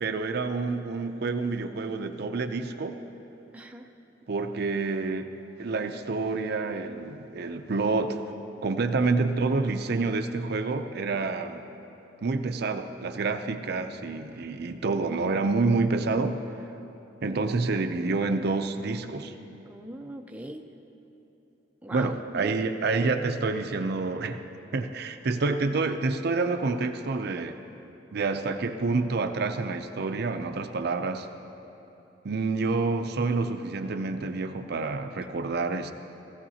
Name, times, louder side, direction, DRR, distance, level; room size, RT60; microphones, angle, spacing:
voice 1, 0.0-3.0 4.3-5.3 5.6-8.3 8.6-11.6 12.2-16.4 17.2-19.3 21.9-24.4 24.7-27.6 28.1-31.3 32.2-35.9, right 3 dB, 60° right, 7 dB, 0.5 m, -28 dB
voice 2, 3.5-3.9 19.6-20.6 21.8-22.5, right 1 dB, 10° right, 3 dB, 0.5 m, -40 dB
16.5 x 15.5 x 2.8 m, 2.9 s
head